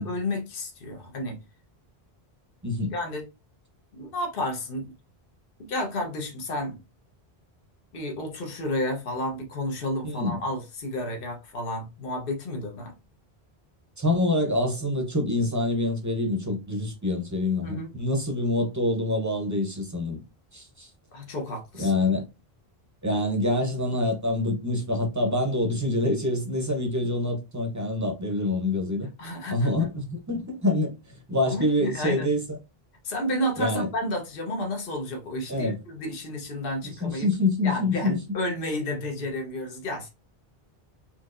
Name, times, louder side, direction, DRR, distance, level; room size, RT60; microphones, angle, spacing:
voice 1, 0.0-1.4 2.9-3.3 3.9-4.9 5.7-6.8 7.9-12.9 17.6-17.9 21.1-22.1 29.2-29.7 31.5-32.2 33.0-37.3 37.6-40.1, left 1 dB, 60° left, 1.2 m, -31 dB
voice 2, 2.6-2.9 10.0-10.4 14.0-20.2 20.5-20.9 21.8-22.2 23.0-29.1 29.5-32.4 33.6-33.9 35.5-35.8 36.8-38.2, left 2 dB, 20° right, 0.7 m, -26 dB
4.4 x 2.8 x 2.5 m
omnidirectional pair, 1.1 m